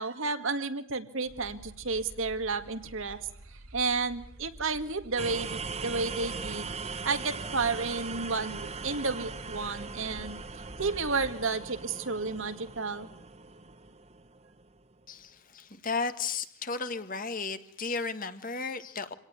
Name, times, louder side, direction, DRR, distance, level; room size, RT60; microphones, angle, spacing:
voice 1, 0.0-3.2 3.7-6.8 7.0-10.4 10.8-13.1, right 4 dB, 65° right, 9 dB, 1.9 m, -32 dB
sound 1, 1.3-11.3, right 1 dB, 80° right, 3.2 m, -49 dB
sound 2, 5.2-14.9, right 4 dB, 30° right, 1.0 m, -40 dB
voice 2, 15.1-19.1, left 4 dB, 40° left, 10 dB, 1.7 m, -34 dB
26.5 x 18.0 x 9.6 m, 0.66 s
head